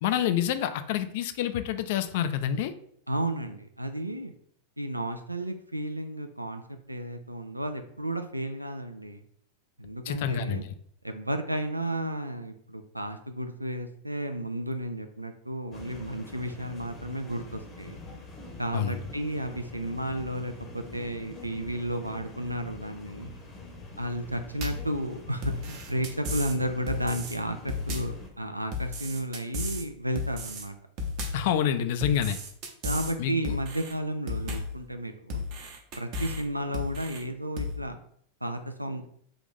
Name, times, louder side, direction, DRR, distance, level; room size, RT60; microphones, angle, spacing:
voice 1, 0.0-2.7 10.1-10.7 18.7-19.0 31.3-32.4 33.2-33.5, left 9 dB, 50° left, 10 dB, 0.3 m, -27 dB
voice 2, 3.1-4.3 4.8-9.2 9.8-10.6 11.0-18.0 18.6-23.3 24.0-30.8 32.8-35.4 36.0-38.0 38.4-39.0, right 1 dB, 85° right, 8 dB, 0.3 m, -33 dB
sound 1, 15.7-28.3, left 2 dB, 25° left, 0.8 m, -45 dB
sound 2, 24.6-24.9 25.4-26.6 26.9-27.4 27.7-28.2 28.7-29.9 30.2-30.7 31.0-31.5 32.0-33.1 33.4-33.9 34.3-34.8 35.3-36.4 36.7-37.2 37.6-37.8, left 3 dB, 40° right, 0.8 m, -34 dB
3.8 x 2.5 x 3.6 m, 0.64 s
figure-of-eight pair, 90°, 0 cm